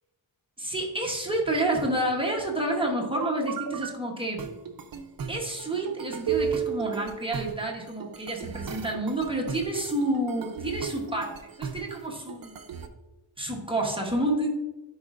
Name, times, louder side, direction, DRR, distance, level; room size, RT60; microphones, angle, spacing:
voice 1, 0.6-4.4 5.3-11.3 11.6-12.6 13.4-14.5, right 1 dB, 10° right, -2 dB, 0.8 m, -29 dB
sound 1, 3.1-3.9 4.4-12.9, right 7 dB, 45° right, 0.5 m, -35 dB
10.5 x 4.4 x 2.4 m, 1.1 s
wide cardioid pair, 170°, 49 cm